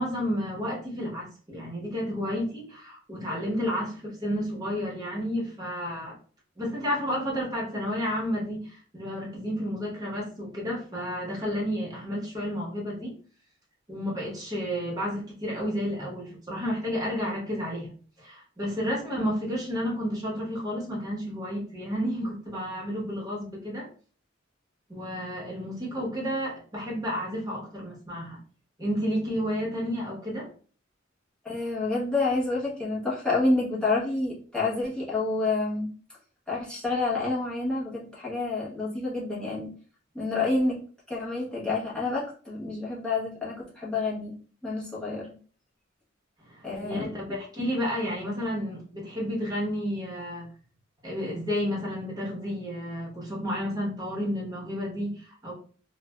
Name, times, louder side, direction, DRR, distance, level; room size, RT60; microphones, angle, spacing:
voice 1, 0.0-6.2 6.6-13.1 13.9-23.9 24.9-28.4 28.8-30.5 46.4-50.5 51.0-55.5, equal, 20° right, -3 dB, 1.0 m, -31 dB
voice 2, 31.4-35.9 36.5-39.7 40.1-40.8 41.1-44.3 44.6-45.3 46.6-47.1, left 3 dB, 5° left, -7 dB, 0.9 m, -28 dB
3.2 x 2.2 x 2.3 m, 0.41 s
head